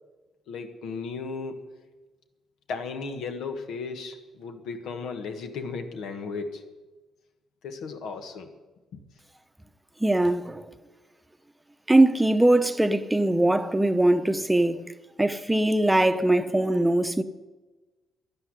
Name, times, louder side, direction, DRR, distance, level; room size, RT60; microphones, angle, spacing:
voice 1, 0.5-1.7 2.7-6.6 7.6-8.5 8.9-9.0, left 4 dB, 80° left, 1.6 m, -35 dB
voice 2, 10.0-10.6 11.9-14.8 15.2-17.2, right 1 dB, 10° right, 0.8 m, -21 dB
13.0 x 11.0 x 9.8 m
cardioid pair, 90°, 0 cm